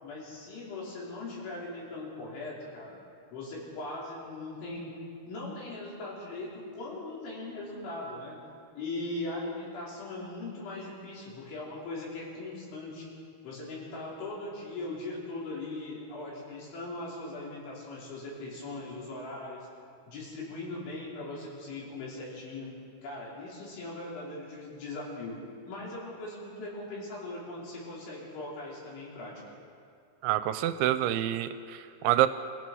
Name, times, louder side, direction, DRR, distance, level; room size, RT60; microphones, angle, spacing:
voice 1, 0.0-3.0 3.3-5.0 5.3-8.4 8.8-13.1 13.4-19.6 20.1-22.7 23.0-25.4 25.7-29.3, left 2 dB, 75° left, -5 dB, 7.3 m, -39 dB
voice 2, 30.2-32.3, right 13 dB, 80° right, 11 dB, 2.9 m, -27 dB
26.5 x 16.0 x 6.3 m, 2.4 s
omnidirectional pair, 5.5 m